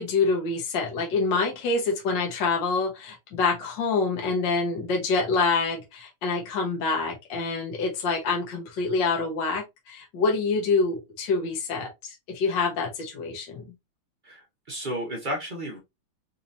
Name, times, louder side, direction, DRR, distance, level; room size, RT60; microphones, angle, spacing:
voice 1, 0.0-13.6, left 4 dB, 65° left, 1.6 m, -26 dB
voice 2, 14.2-15.8, equal, 45° right, 0.6 m, -33 dB
4.2 x 2.8 x 2.5 m
omnidirectional pair, 2.3 m